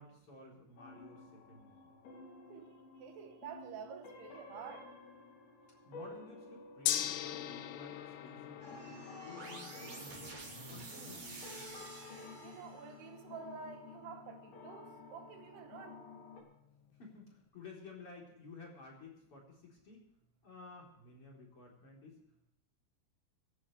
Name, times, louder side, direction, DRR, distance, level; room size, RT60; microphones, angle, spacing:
voice 1, 0.0-2.0 5.8-10.4 10.7-11.4 17.0-20.0 20.4-22.2, left 3 dB, 35° left, 4.4 m, -54 dB
sound 1, 0.8-16.4, left 3 dB, 60° left, 4.5 m, -53 dB
voice 2, 3.0-4.9 12.4-16.0, right 7 dB, 75° right, 3.0 m, -49 dB
Gong, 6.9-17.1, left 12 dB, 80° left, 3.0 m, -44 dB
sound 2, 8.6-12.9, right 3 dB, 50° right, 4.6 m, -50 dB
25.5 x 12.0 x 3.4 m
omnidirectional pair, 5.0 m